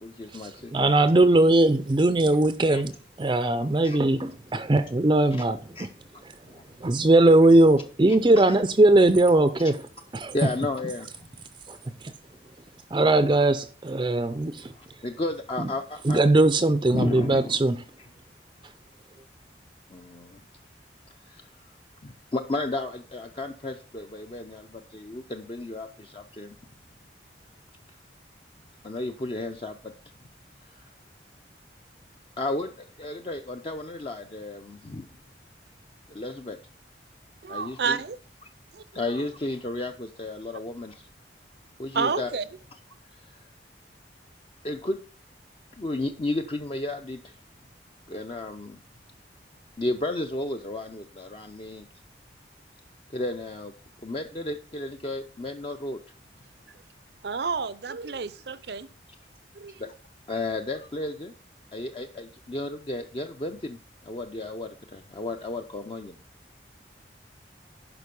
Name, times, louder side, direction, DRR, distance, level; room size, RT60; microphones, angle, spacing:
voice 1, 0.0-0.9 2.7-2.8 3.8-4.0 5.3-5.4 5.8-5.9 6.5-6.6 8.1-8.6 9.6-9.7 10.3-11.3 14.7-16.3 16.9-17.6 19.9-20.4 21.3-21.5 22.0-26.6 28.8-29.9 30.8-30.9 32.4-35.1 36.1-36.6 37.5-38.0 38.9-41.1 41.8-42.3 44.6-45.0 45.8-47.3 48.1-48.8 49.8-51.9 53.1-53.7 54.0-56.0 59.8-59.9 60.3-61.3 61.7-63.8 64.0-66.2, left 2 dB, 30° left, 0.6 m, -33 dB
voice 2, 0.7-2.9 3.2-5.6 6.8-9.8 10.1-10.3 11.7-11.8 12.9-14.7 15.6-15.7 16.1-17.8, right 2 dB, 25° right, 0.5 m, -20 dB
voice 3, 37.4-38.2 38.7-39.2 41.9-42.4 57.2-58.9 59.5-59.8, right 5 dB, 65° right, 0.6 m, -30 dB
11.0 x 5.1 x 5.3 m
head